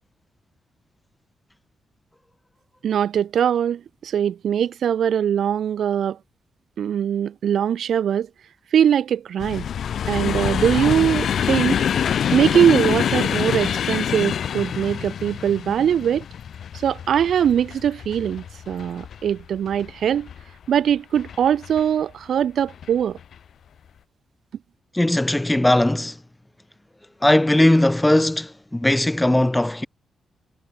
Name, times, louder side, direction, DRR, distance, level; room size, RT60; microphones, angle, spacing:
voice 1, 2.8-6.2 6.8-8.3 8.7-9.7 10.1-11.8 12.3-16.2 16.8-20.3 20.7-23.2, right 9 dB, 70° right, 3.1 m, -21 dB
sound 1, 9.4-20.5 21.1-21.8 22.7-22.9 23.2-23.3, left 8 dB, 65° left, 6.2 m, -26 dB
voice 2, 24.9-26.2 27.2-29.9, left 1 dB, 10° left, 3.3 m, -18 dB
wide cardioid pair, 130°, 0 cm